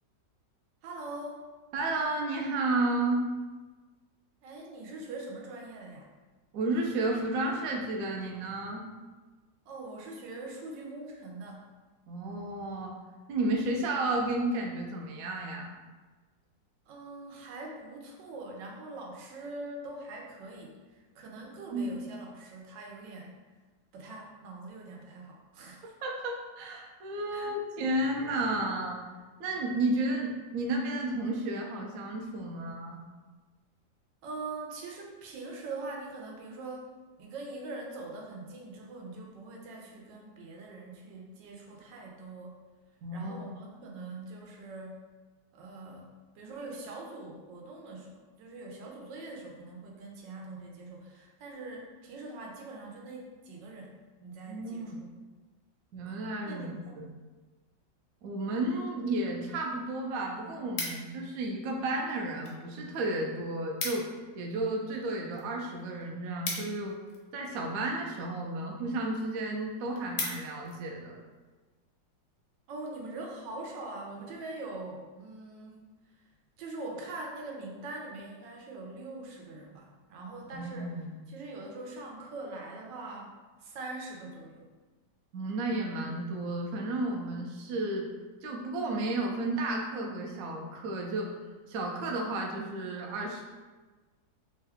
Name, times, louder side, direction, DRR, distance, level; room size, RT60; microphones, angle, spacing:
voice 1, 0.8-1.4 4.4-6.1 9.7-11.7 16.9-20.8 21.1-23.3 23.9-25.9 27.3-27.5 34.2-36.9 37.2-42.6 43.1-45.0 45.5-54.8 56.4-57.0 72.7-75.9 76.6-80.9 81.3-84.7, right 2 dB, 90° right, -1 dB, 1.3 m, -43 dB
voice 2, 1.7-3.2 6.5-8.9 12.1-12.9 13.3-15.7 21.6-21.9 26.0-29.0 29.4-33.0 43.0-43.5 54.5-55.0 55.9-57.1 58.2-64.1 64.3-66.9 67.3-71.2 80.5-81.2 85.3-88.1 88.4-91.3 91.7-93.4, right 2 dB, 70° right, 0 dB, 0.8 m, -32 dB
sound 1, 59.6-59.7 60.0-61.4 62.1-62.6 62.9-63.0 63.3-63.4 63.6-64.2 64.6-67.4 68.1-68.5 69.0-69.1 69.4-69.5 69.8-70.8 71.3-71.5, left 3 dB, 70° left, 1.2 m, -38 dB
3.6 x 2.2 x 3.4 m, 1.3 s
omnidirectional pair, 1.9 m